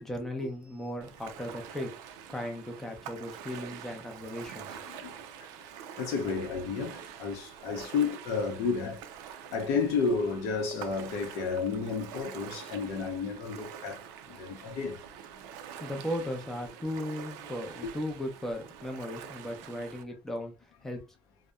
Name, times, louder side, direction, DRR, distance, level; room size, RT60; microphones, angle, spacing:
voice 1, 0.0-4.8 15.8-20.5 20.8-21.0, left 1 dB, 5° left, 0.5 m, -37 dB
Ocean, 1.0-20.0, right 9 dB, 85° right, 0.4 m, -46 dB
voice 2, 6.0-9.0 9.5-14.0 14.4-15.0 17.8-17.9, left 5 dB, 70° left, 0.6 m, -31 dB
2.6 x 2.0 x 2.3 m
cardioid pair, 165°, 6 cm